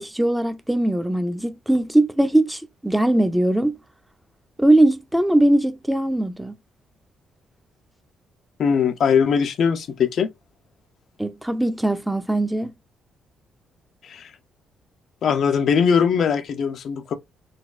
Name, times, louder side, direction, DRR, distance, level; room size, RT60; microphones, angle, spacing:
voice 1, 0.0-3.8 4.6-6.6 11.2-12.7, right 1 dB, 5° right, 0.5 m, -20 dB
voice 2, 8.6-10.3 14.0-14.3 15.2-17.1, left 6 dB, 65° left, 0.5 m, -20 dB
4.0 x 2.3 x 2.3 m
cardioid pair, 90°, 0 cm